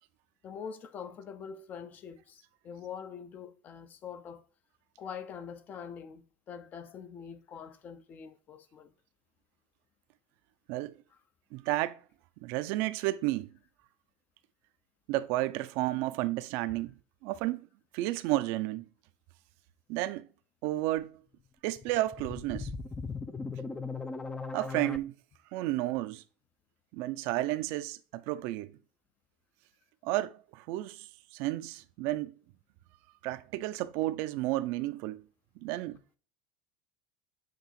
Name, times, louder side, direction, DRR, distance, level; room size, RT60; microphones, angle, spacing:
voice 1, 0.4-4.5 5.0-8.9, left 7 dB, 40° left, 0.9 m, -44 dB
voice 2, 11.5-12.0 12.4-13.5 15.1-16.9 17.2-17.7 17.9-18.8 19.9-20.3 20.6-21.2 21.6-22.7 24.5-25.1 25.5-26.2 26.9-28.7 30.0-32.3 33.2-35.2 35.6-36.0, right 16 dB, 65° right, 0.6 m, -32 dB
sound 1, 21.7-25.0, left 4 dB, 15° left, 0.6 m, -38 dB
7.7 x 3.0 x 4.3 m
supercardioid pair, 110°, 4 cm